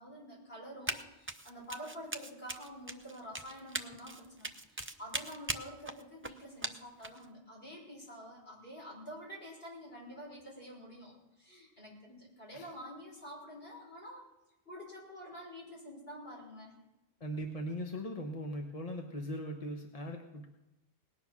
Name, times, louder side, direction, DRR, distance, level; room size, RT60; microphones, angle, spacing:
voice 1, 0.0-14.2 14.7-16.8, equal, 60° left, -4 dB, 6.1 m, -48 dB
Run, 0.9-1.0 1.3-7.2, right 2 dB, 15° right, 0.5 m, -40 dB
voice 2, 17.2-20.5, equal, 35° left, 2 dB, 1.1 m, -39 dB
19.0 x 9.5 x 6.1 m, 0.95 s
omnidirectional pair, 1.1 m